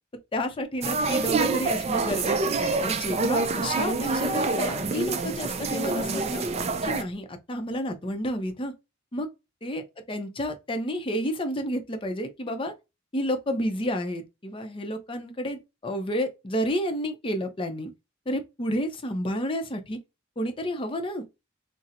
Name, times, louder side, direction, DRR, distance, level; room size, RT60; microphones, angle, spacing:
voice 1, 0.3-6.4 6.8-8.7 9.1-9.3 9.6-12.7 13.1-17.9 18.3-20.0 20.4-21.3, equal, 25° left, 0.5 m, -30 dB
sound 1, 0.8-7.0, right 3 dB, 35° right, 0.3 m, -27 dB
4.1 x 2.0 x 2.5 m
head